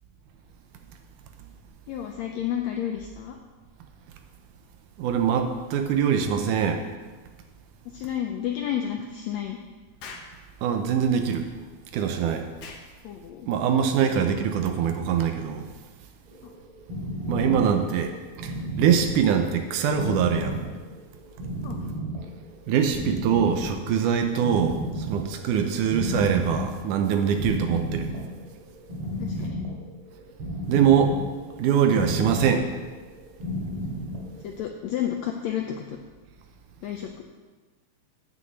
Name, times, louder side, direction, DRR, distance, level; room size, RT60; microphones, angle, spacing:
voice 1, 1.9-3.4 7.8-9.6 13.0-13.5 16.4-16.5 21.6-22.0 29.2-29.6 34.4-36.0 36.8-37.2, left 10 dB, 85° left, 3 dB, 1.5 m, -31 dB
voice 2, 5.0-6.8 10.6-11.5 11.9-12.5 13.5-15.7 17.3-20.6 22.7-28.1 30.7-31.2 31.6-32.7, right 7 dB, 75° right, 6 dB, 2.1 m, -23 dB
Explosion, 10.0-10.4 12.6-12.9, left 4 dB, 65° left, 1.6 m, -41 dB
sound 1, 16.3-34.8, equal, 45° right, 3.1 m, -33 dB
7.9 x 6.3 x 8.0 m, 1.3 s
omnidirectional pair, 3.9 m